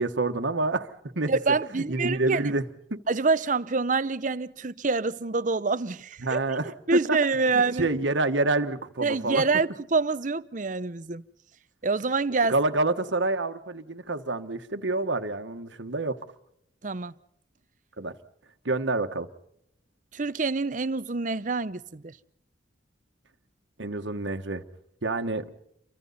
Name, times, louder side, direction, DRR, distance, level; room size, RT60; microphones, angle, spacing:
voice 1, 0.0-1.3 1.7-2.7 6.2-6.7 7.1-7.2 7.5-9.4 12.5-16.2 18.0-18.1 18.6-19.3 23.8-24.6 25.0-25.4, right 2 dB, 85° right, 1.4 m, -27 dB
voice 2, 1.3-2.5 3.1-6.4 6.9-7.9 9.0-11.2 11.8-12.6 16.8-17.1 20.1-22.1, right 4 dB, 45° right, 0.7 m, -26 dB
29.5 x 24.0 x 4.1 m
head